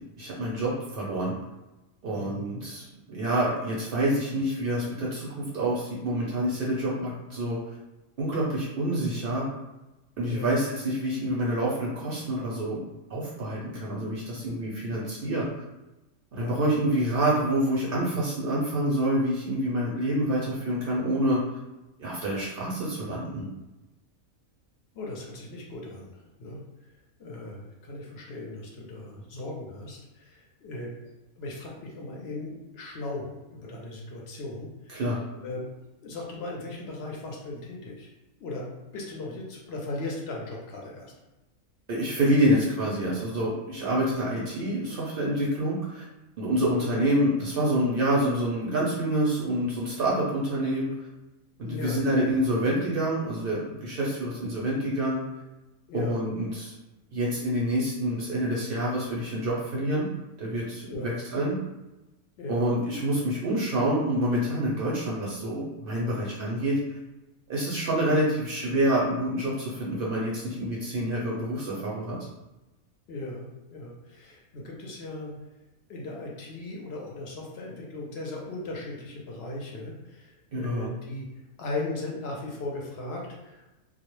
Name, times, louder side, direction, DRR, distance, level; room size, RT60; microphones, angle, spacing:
voice 1, 0.2-1.3 2.0-7.6 8.2-9.5 10.2-12.8 13.1-15.5 16.3-21.4 22.0-23.5 34.9-35.2 41.9-46.0 46.4-50.9 51.6-55.2 55.9-56.7 57.1-60.1 60.4-61.6 62.5-67.0 67.5-72.2 80.5-80.9, right 1 dB, 60° right, -5 dB, 0.6 m, -27 dB
voice 2, 10.2-10.5 16.4-16.6 17.0-17.1 24.9-26.6 27.2-30.9 31.4-35.0 35.4-35.7 36.0-38.1 38.4-41.1 46.6-46.9 51.6-52.0 55.9-56.2 60.9-61.2 62.4-62.7 73.1-73.5 73.7-75.3 75.9-81.3 81.6-83.7, left 2 dB, 60° left, -2 dB, 0.7 m, -37 dB
2.3 x 2.0 x 3.0 m, 1.0 s
omnidirectional pair, 1.4 m